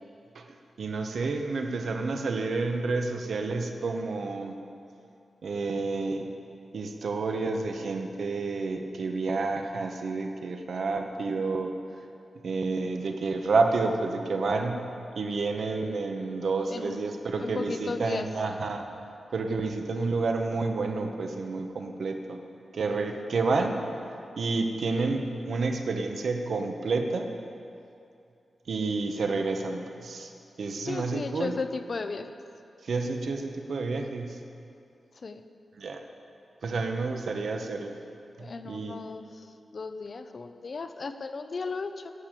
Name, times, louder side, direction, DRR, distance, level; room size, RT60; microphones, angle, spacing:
voice 1, 0.8-4.5 5.4-6.3 6.7-11.7 12.4-14.9 15.1-18.8 19.3-22.4 22.7-23.8 24.4-27.3 28.7-30.3 30.6-31.5 32.9-34.4 35.8-36.0 36.6-38.0 38.4-39.0, right 3 dB, 70° right, 4 dB, 1.1 m, -29 dB
voice 2, 16.7-17.1 17.4-18.3 30.8-32.3 35.2-35.4 38.4-42.1, left 4 dB, 50° left, 9 dB, 0.7 m, -35 dB
11.5 x 8.7 x 7.6 m, 2.6 s
wide cardioid pair, 100°, 0 cm